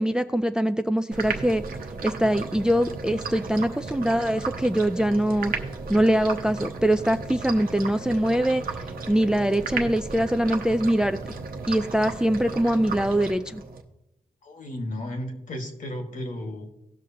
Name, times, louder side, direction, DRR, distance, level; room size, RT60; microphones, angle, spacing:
voice 1, 0.0-1.6 2.0-5.5 5.9-8.6 9.1-11.2 11.7-13.6, right 1 dB, 5° right, 10 dB, 0.3 m, -23 dB
sound 1, 1.1-13.8, right 4 dB, 90° right, 1.0 m, -34 dB
voice 2, 14.4-16.7, left 1 dB, 65° left, 4 dB, 1.7 m, -34 dB
17.5 x 6.3 x 2.8 m, 0.88 s
wide cardioid pair, 105°, 15 cm